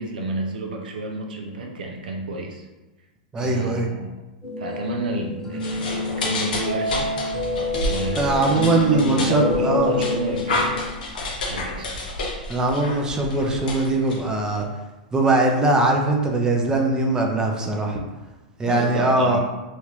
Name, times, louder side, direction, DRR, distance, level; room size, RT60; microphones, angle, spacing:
voice 1, 0.0-2.7 3.4-4.1 4.6-7.1 7.8-11.0 11.4-11.9 18.6-19.4, right 2 dB, 80° right, 2 dB, 0.6 m, -30 dB
voice 2, 3.3-3.9 8.2-9.9 12.5-14.7 15.1-18.0 18.6-19.4, right 2 dB, 15° right, 1 dB, 0.5 m, -21 dB
sound 1, 4.4-10.8, left 3 dB, 5° left, 1.0 m, -28 dB
sound 2, 5.6-14.6, left 2 dB, 75° left, 0.8 m, -30 dB
3.1 x 2.4 x 3.1 m, 1.1 s
hypercardioid pair, 115°, 5 cm